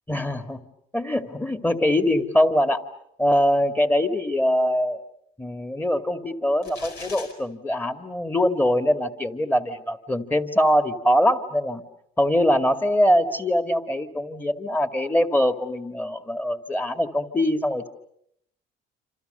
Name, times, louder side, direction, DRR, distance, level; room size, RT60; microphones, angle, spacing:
voice 1, 0.1-0.6 0.9-2.8 3.2-5.0 5.4-11.8 12.2-17.9, equal, 10° left, 8 dB, 2.1 m, -23 dB
sound 1, 6.6-7.3, left 4 dB, 75° left, 4.6 m, -40 dB
27.5 x 27.5 x 6.8 m, 0.72 s
cardioid pair, 110°, 17 cm